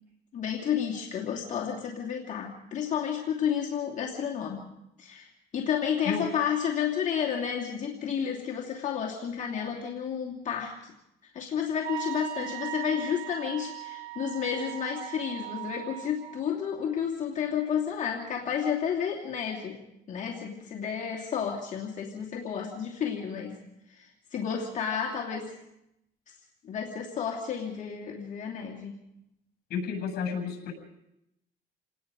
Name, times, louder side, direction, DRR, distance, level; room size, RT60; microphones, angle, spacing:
voice 1, 0.3-4.7 5.0-10.9 11.2-19.8 20.1-23.6 23.9-25.5 26.6-29.0, left 8 dB, 45° left, -2 dB, 2.7 m, -31 dB
Wind instrument woodwind instrument, 11.8-16.2, right 15 dB, 70° right, 4.5 m, -38 dB
voice 2, 29.7-30.7, left 6 dB, 65° left, 4 dB, 7.8 m, -31 dB
28.5 x 19.0 x 5.2 m, 0.84 s
cardioid pair, 110°, 17 cm